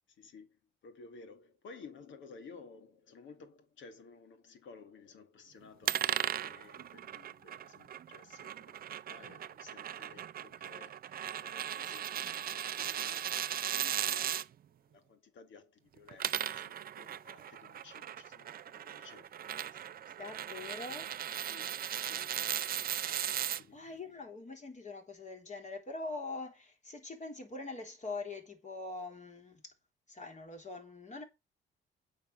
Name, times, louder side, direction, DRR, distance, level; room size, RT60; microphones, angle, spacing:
voice 1, 0.1-14.5 14.8-18.5 18.8-20.0 21.5-23.0 23.5-24.2, left 4 dB, 75° left, 2.1 m, -56 dB
sound 1, 5.8-14.4 16.0-23.6, right 10 dB, 50° right, 0.5 m, -37 dB
voice 2, 20.2-21.1 23.7-29.7 30.1-31.2, left 3 dB, 35° left, 3.7 m, -43 dB
8.7 x 5.4 x 6.5 m
cardioid pair, 90°, 20 cm